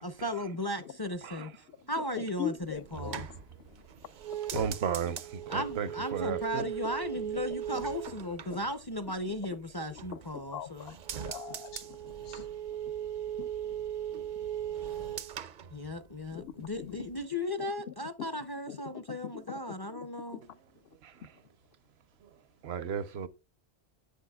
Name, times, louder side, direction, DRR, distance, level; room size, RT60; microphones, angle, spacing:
voice 1, 0.0-1.5 1.9-3.3 5.5-10.9 15.7-20.4, left 1 dB, 30° left, 0.5 m, -36 dB
voice 2, 2.2-3.3 4.5-4.7 7.7-7.8 8.5-8.6 10.5-10.9 11.2-11.9 12.2-12.5 13.4-13.5 16.3-17.0 18.7-19.6 19.9-20.1 20.3-20.4, left 9 dB, 70° left, 0.8 m, -40 dB
sound 1, 2.6-9.4 9.8-10.5 10.8-16.5 16.7-17.2, right 10 dB, 55° right, 0.6 m, -39 dB
voice 3, 4.5-5.2 5.5-6.6 22.6-23.3, right 8 dB, 75° right, 1.0 m, -33 dB
10.0 x 8.3 x 2.3 m
omnidirectional pair, 1.1 m